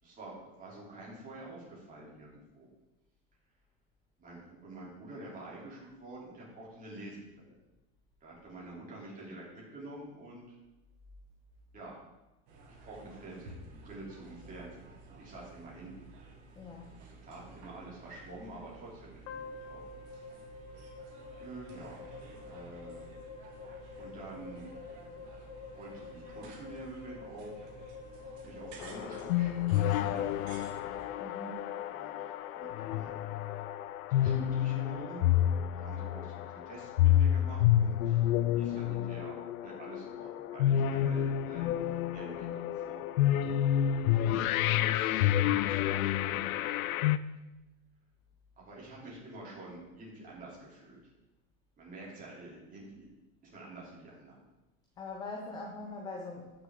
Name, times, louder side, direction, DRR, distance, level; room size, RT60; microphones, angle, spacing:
voice 1, 0.0-2.7 4.2-7.5 8.2-10.5 11.7-12.0 12.7-15.9 17.2-19.8 21.4-23.0 24.0-24.7 25.7-27.7 28.2-30.6 31.9-33.6 34.1-35.3 35.7-38.3 38.5-43.0 44.6-47.1 48.6-51.1 51.8-53.1 53.4-54.4, right 2 dB, 20° right, -5 dB, 3.3 m, -48 dB
sound 1, 12.5-31.1, right 3 dB, 50° right, 2.1 m, -53 dB
voice 2, 16.6-16.9 31.2-31.7 44.2-44.6 55.0-56.6, left 3 dB, 10° left, 0 dB, 0.5 m, -43 dB
sound 2, 19.3-31.5, left 4 dB, 45° left, 0.9 m, -48 dB
sound 3, 28.8-47.2, left 11 dB, 70° left, 0.6 m, -29 dB
14.5 x 6.5 x 3.8 m, 1.0 s
supercardioid pair, 155°, 43 cm